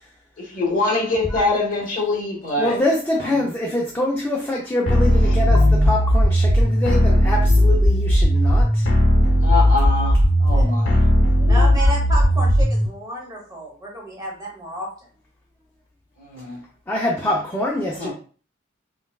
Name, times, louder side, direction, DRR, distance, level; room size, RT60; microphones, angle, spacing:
voice 1, 0.5-2.8 3.2-3.4 5.3-5.4 9.4-11.0 11.4-11.7 16.2-16.6 17.9-18.1, left 3 dB, 40° left, -3 dB, 1.4 m, -24 dB
voice 2, 2.6-8.9 11.8-11.9 16.9-18.1, left 1 dB, 10° left, -3 dB, 0.5 m, -24 dB
sound 1, 4.9-12.9, equal, 70° left, 0.8 m, -16 dB
voice 3, 11.5-15.1, right 1 dB, 20° right, -2 dB, 1.1 m, -31 dB
5.4 x 2.3 x 2.3 m, 0.39 s
head